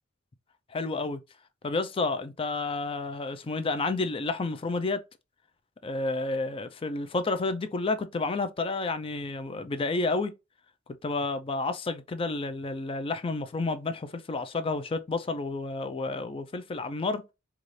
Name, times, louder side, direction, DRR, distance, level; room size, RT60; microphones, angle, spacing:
voice 1, 0.7-1.2 1.6-5.0 5.8-10.3 11.0-17.2, left 3 dB, 25° left, 0.4 m, -30 dB
3.9 x 2.4 x 3.1 m
head